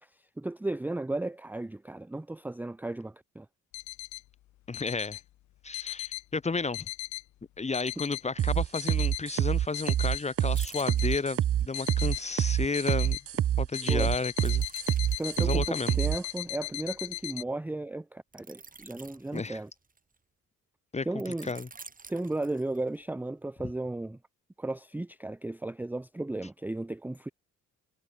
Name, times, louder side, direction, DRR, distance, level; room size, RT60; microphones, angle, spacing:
voice 1, 0.4-3.5 13.9-14.1 15.2-19.7 21.1-21.5 22.1-24.2 24.6-27.3, right 2 dB, 5° right, 0.6 m, -35 dB
sound 1, 3.7-4.2 4.7-5.2 5.7-6.2 6.7-7.2 7.7-8.2 8.7-9.2 9.7-10.2 10.7-11.2 11.7-12.2 12.7-13.2 13.7-17.4, left 15 dB, 70° left, 0.8 m, -38 dB
voice 2, 4.7-5.2 5.6-6.9 7.6-13.2 13.6-14.6 15.4-16.0 19.3-19.6 20.9-21.1 21.4-21.7, left 4 dB, 20° left, 1.6 m, -32 dB
sound 2, 8.4-16.2, right 11 dB, 50° right, 0.7 m, -27 dB
sound 3, 10.6-12.1 14.4-17.1 18.3-20.2 21.2-23.0 23.5-23.7, right 4 dB, 25° right, 6.1 m, -50 dB
cardioid pair, 90°, 30 cm